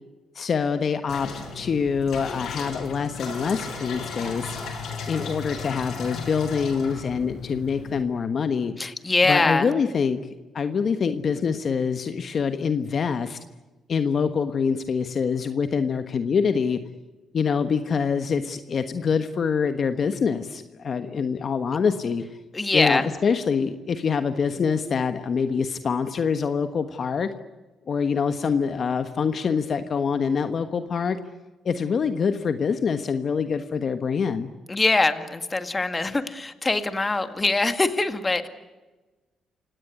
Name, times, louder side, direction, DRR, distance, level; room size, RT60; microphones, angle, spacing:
voice 1, 0.3-4.6 5.1-8.7 9.3-10.2 10.5-13.4 13.9-16.8 17.3-22.2 22.7-27.3 27.9-31.2 31.6-34.5, left 6 dB, 50° left, 9 dB, 1.3 m, -25 dB
sound 1, 1.1-8.0, left 4 dB, 70° left, 8.0 m, -35 dB
voice 2, 8.8-9.7 22.5-23.1 34.7-38.5, left 3 dB, 20° left, 9 dB, 2.0 m, -23 dB
29.0 x 17.5 x 9.6 m, 1.2 s
cardioid pair, 90°, 0 cm